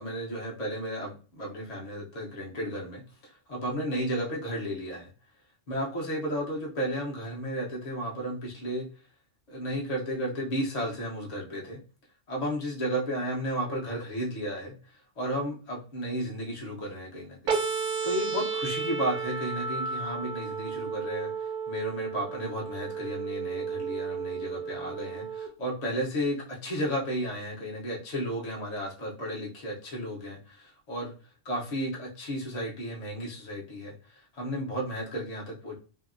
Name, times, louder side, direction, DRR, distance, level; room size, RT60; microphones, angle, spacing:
voice 1, 0.0-3.0 3.5-5.1 5.7-8.9 9.5-11.8 12.3-14.7 15.2-17.4 18.0-21.3 21.7-31.1 31.4-35.8, equal, 40° left, -3 dB, 0.7 m, -33 dB
sound 1, 17.5-25.5, right 5 dB, 55° right, 0.8 m, -33 dB
2.8 x 2.7 x 2.5 m, 0.37 s
omnidirectional pair, 1.2 m